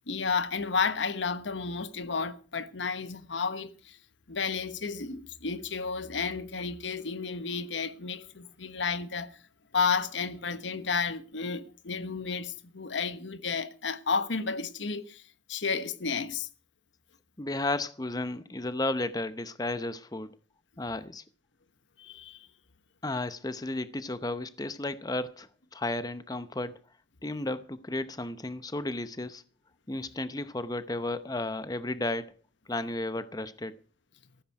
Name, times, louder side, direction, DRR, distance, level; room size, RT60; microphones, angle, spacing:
voice 1, 0.1-4.0 4.3-9.3 9.7-15.2 15.5-16.5 22.0-22.5, left 5 dB, 85° left, 1.2 m, -32 dB
voice 2, 17.4-20.3 20.8-21.2 23.0-25.5 25.7-26.7 27.2-29.4 29.9-32.3 32.7-33.7, left 2 dB, 20° left, 0.8 m, -33 dB
14.5 x 13.5 x 4.8 m
head